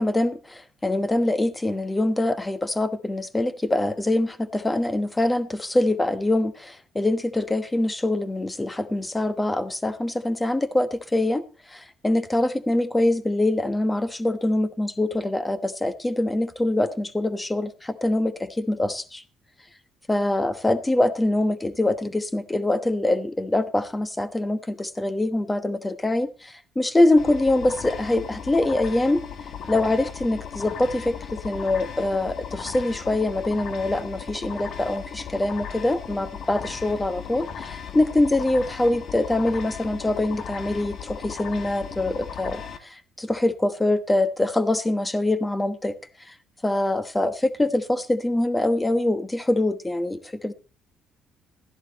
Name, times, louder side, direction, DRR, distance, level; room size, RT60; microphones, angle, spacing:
voice 1, 0.0-11.4 11.7-19.2 20.1-29.2 29.7-45.9 46.3-46.4 46.6-50.5, left 1 dB, 15° left, 12 dB, 1.2 m, -24 dB
sound 1, 27.2-42.8, left 7 dB, 55° left, 1.6 m, -37 dB
13.0 x 11.0 x 4.2 m, 0.35 s
cardioid pair, 105°, 0 cm